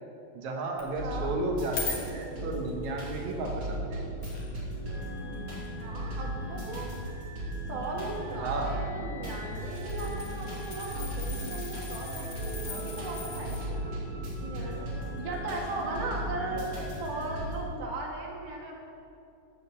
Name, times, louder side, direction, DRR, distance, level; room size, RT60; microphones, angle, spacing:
voice 1, 0.3-4.1 8.4-8.8 15.5-15.6 16.8-16.9, right 2 dB, 70° right, 1 dB, 2.6 m, -33 dB
sound 1, 0.8-0.9 1.3-2.7 3.5-3.6 4.2-4.8 5.0-5.1 5.9-7.0 8.2-8.4 8.7-8.8 9.3-13.6 17.5-17.6, left 5 dB, 55° left, 2.5 m, -41 dB
sound 2, 1.0-17.6, right 1 dB, 40° right, 3.8 m, -36 dB
voice 2, 1.0-1.4 5.8-6.9 7.7-13.8 14.4-14.9 15.2-16.7 17.0-18.8, right 2 dB, 85° right, -2 dB, 3.3 m, -37 dB
15.0 x 5.2 x 6.9 m, 2.7 s
omnidirectional pair, 3.6 m